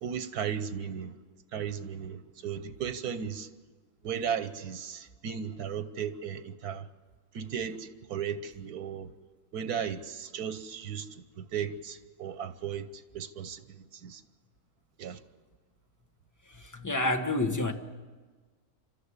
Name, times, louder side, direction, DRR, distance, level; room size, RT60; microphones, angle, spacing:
voice 1, 0.0-1.1 1.5-3.5 4.0-6.9 7.3-9.1 9.5-11.1 11.4-12.9 13.1-13.6 13.9-14.2 15.0-15.2, right 8 dB, 90° right, 1.4 m, -35 dB
voice 2, 16.5-17.7, left 2 dB, 15° left, 1.2 m, -29 dB
27.5 x 13.0 x 9.7 m
omnidirectional pair, 1.6 m